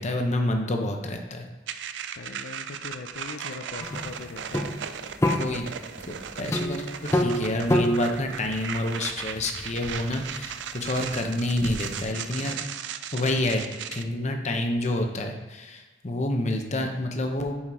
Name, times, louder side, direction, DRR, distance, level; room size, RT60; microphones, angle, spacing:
voice 1, 0.0-1.4 5.4-5.7 6.1-6.8 7.1-12.6 13.1-13.6 13.9-17.5, left 1 dB, 40° left, 4 dB, 0.9 m, -28 dB
sound 1, 1.7-14.0, right 8 dB, 75° right, 0.4 m, -37 dB
voice 2, 2.2-4.7, left 4 dB, 70° left, 4 dB, 0.5 m, -40 dB
sound 2, 3.8-12.1, left 1 dB, 15° left, 0.5 m, -29 dB
7.3 x 4.3 x 4.8 m, 1.3 s
head